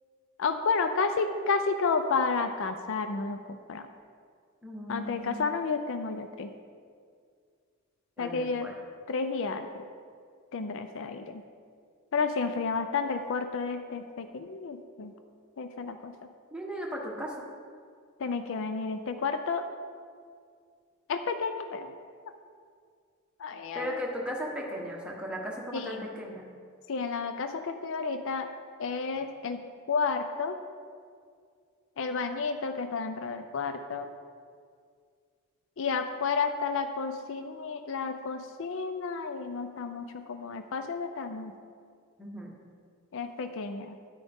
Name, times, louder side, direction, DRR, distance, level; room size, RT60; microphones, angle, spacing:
voice 1, 0.4-3.8 4.9-6.5 8.2-8.7 9.1-9.7 10.5-11.4 12.1-15.1 15.6-16.1 18.2-19.6 21.1-21.9 23.4-24.0 25.7-26.1 26.9-28.5 28.8-29.6 29.9-30.6 32.0-34.1 35.8-41.5 43.1-44.0, left 4 dB, 60° left, 8 dB, 0.4 m, -31 dB
voice 2, 4.6-5.5 8.2-8.7 16.5-17.3 23.7-26.5 42.2-42.5, equal, 5° right, -2 dB, 1.2 m, -36 dB
9.8 x 9.2 x 3.5 m, 2.1 s
head